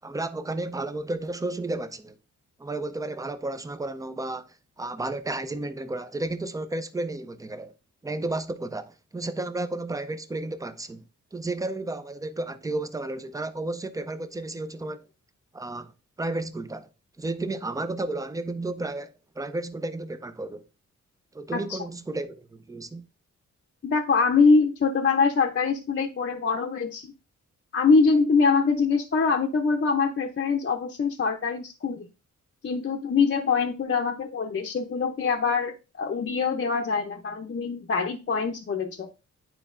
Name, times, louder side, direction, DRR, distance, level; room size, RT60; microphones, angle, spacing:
voice 1, 0.0-2.2 2.6-7.7 8.0-11.0 11.3-15.1 15.5-15.9 16.2-16.9 17.2-20.6 21.3-23.0, right 2 dB, 10° right, 0.5 m, -32 dB
voice 2, 23.8-27.1 27.7-32.1 32.6-39.1, left 4 dB, 40° left, 0.7 m, -24 dB
9.2 x 4.5 x 2.5 m
cardioid pair, 105°, 30 cm